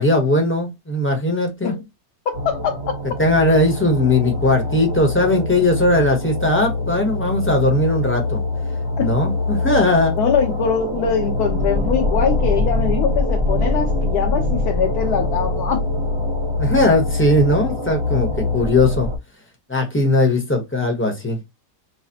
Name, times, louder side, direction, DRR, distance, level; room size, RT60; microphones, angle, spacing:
voice 1, 0.0-1.8 3.2-8.4 9.0-10.2 16.6-19.1 19.7-21.4, left 1 dB, 10° left, 0.7 m, -18 dB
voice 2, 2.3-3.0 9.0-9.1 10.2-15.8, left 7 dB, 70° left, 1.2 m, -22 dB
sound 1, 2.3-19.2, left 2 dB, 40° right, 0.4 m, -23 dB
4.7 x 2.0 x 2.8 m
omnidirectional pair, 1.8 m